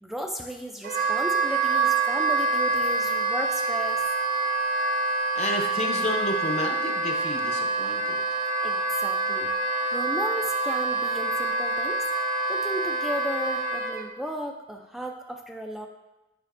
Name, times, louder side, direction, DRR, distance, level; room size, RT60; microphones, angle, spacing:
voice 1, 0.0-4.0 8.6-9.5 9.9-12.0 12.5-15.9, equal, ahead, 2 dB, 0.3 m, -34 dB
Wind instrument woodwind instrument, 0.8-14.0, right 3 dB, 50° right, 0.6 m, -26 dB
voice 2, 5.3-8.2, left 2 dB, 40° left, 3 dB, 0.7 m, -31 dB
8.2 x 5.0 x 2.5 m, 1.0 s
head